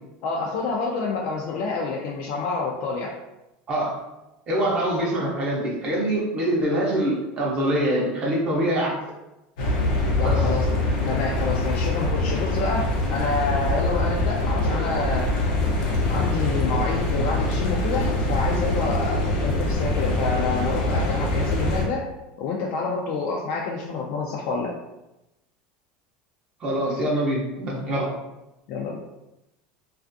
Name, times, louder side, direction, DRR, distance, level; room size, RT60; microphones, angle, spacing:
voice 1, 0.2-3.1 10.2-10.7 11.0-15.3 16.1-22.1 22.4-24.7 26.8-26.9 27.9-28.1 28.7-29.0, left 4 dB, 55° left, -1 dB, 0.3 m, -28 dB
voice 2, 4.5-8.9 10.2-10.4 26.6-28.1, right 1 dB, 25° right, -4 dB, 0.6 m, -24 dB
sound 1, 9.6-21.8, left 2 dB, 85° left, 0.7 m, -24 dB
2.4 x 2.3 x 2.5 m, 0.95 s
cardioid pair, 165°, 4 cm